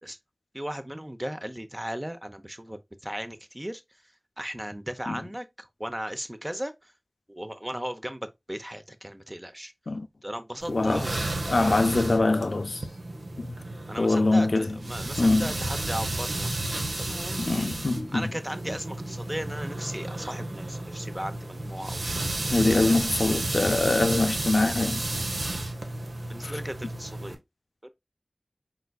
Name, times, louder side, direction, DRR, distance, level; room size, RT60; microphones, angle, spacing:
voice 1, 0.5-3.8 4.4-6.9 7.3-9.7 10.2-11.1 13.9-14.5 14.9-16.6 17.0-17.4 18.1-22.5 26.3-27.4 27.8-27.9, equal, 20° right, 0.7 m, -36 dB
sound 1, 10.6-27.4, right 2 dB, 85° right, 0.8 m, -32 dB
voice 2, 10.7-11.1 11.5-12.9 13.4-13.6 14.0-14.8 15.2-15.5 17.4-18.3 22.5-25.0 26.4-26.5, left 2 dB, 80° left, 0.4 m, -24 dB
4.5 x 3.8 x 2.3 m
wide cardioid pair, 45°, 0 cm